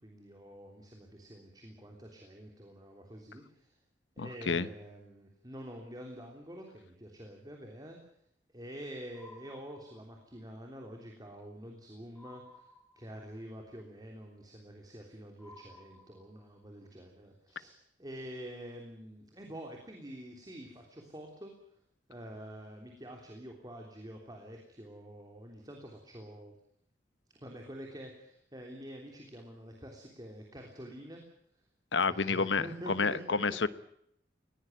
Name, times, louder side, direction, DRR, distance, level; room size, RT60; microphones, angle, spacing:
voice 1, 0.0-3.8 4.2-8.0 8.5-21.5 22.1-26.5 27.3-31.2 32.1-33.4, equal, 20° right, 1 dB, 3.3 m, -47 dB
voice 2, 4.2-4.7 31.9-33.7, left 4 dB, 85° left, 14 dB, 1.1 m, -30 dB
sound 1, 9.1-10.4 12.2-13.4 15.4-16.6, left 2 dB, 5° left, 4.5 m, -56 dB
20.5 x 18.0 x 9.1 m, 0.71 s
head